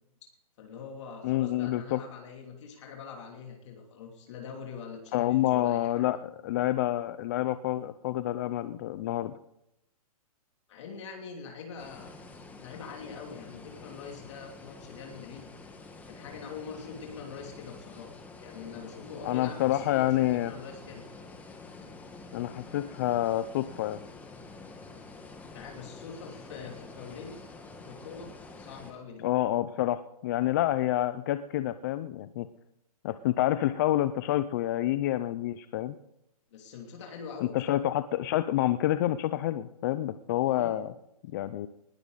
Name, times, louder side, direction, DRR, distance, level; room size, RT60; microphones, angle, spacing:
voice 1, 0.6-6.1 10.7-12.1 12.6-15.5 16.1-18.1 18.4-21.1 25.5-27.4 27.9-28.3 28.6-29.2 36.5-37.8 40.4-40.8, left 6 dB, 50° left, 1 dB, 3.0 m, -43 dB
voice 2, 1.2-2.0 5.1-9.3 19.2-20.5 22.3-24.0 29.2-32.5 33.0-35.9 37.4-40.9 41.3-41.7, left 14 dB, 30° left, 12 dB, 0.5 m, -28 dB
sound 1, 11.8-28.9, left 3 dB, 10° left, 1.5 m, -48 dB
20.0 x 12.5 x 4.0 m, 0.82 s
hypercardioid pair, 155°, 20 cm